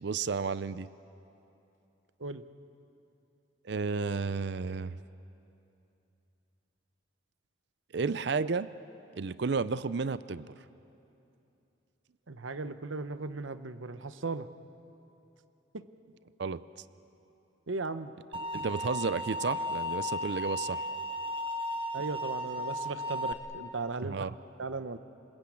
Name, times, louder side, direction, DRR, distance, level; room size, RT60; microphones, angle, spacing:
voice 1, 0.0-0.9 3.6-4.9 7.9-8.7 9.2-10.5 16.4-16.6 18.5-20.8 24.0-24.3, right 4 dB, 60° right, 15 dB, 0.5 m, -32 dB
voice 2, 12.3-14.5 15.7-15.8 17.7-18.1 21.9-24.2 24.6-25.0, right 3 dB, 90° right, 11 dB, 0.9 m, -37 dB
sound 1, 18.3-23.3, left 1 dB, 25° right, 1.8 m, -35 dB
28.0 x 20.5 x 8.6 m, 2.8 s
head